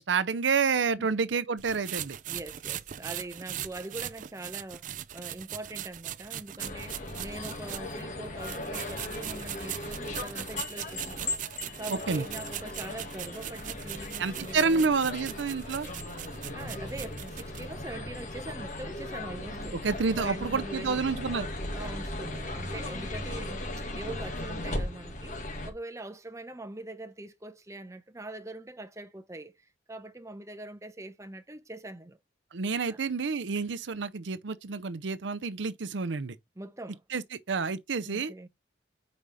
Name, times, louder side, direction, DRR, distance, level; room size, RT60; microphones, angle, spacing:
voice 1, 0.0-2.2 11.9-12.2 14.2-15.9 19.8-21.5 32.5-36.4 37.1-38.3, right 5 dB, 85° right, 0.6 m, -29 dB
sound 1, 1.6-8.0 8.4-17.6, right 11 dB, 45° right, 0.4 m, -40 dB
voice 2, 2.3-11.4 11.8-14.9 16.5-19.8 20.2-21.0 21.7-23.7 24.0-29.6 29.9-32.2 32.9-33.0 36.6-37.0 38.0-38.5, right 2 dB, 15° right, 0.8 m, -42 dB
sound 2, 6.6-25.7, left 1 dB, 45° left, 2.0 m, -37 dB
5.2 x 4.8 x 5.5 m
head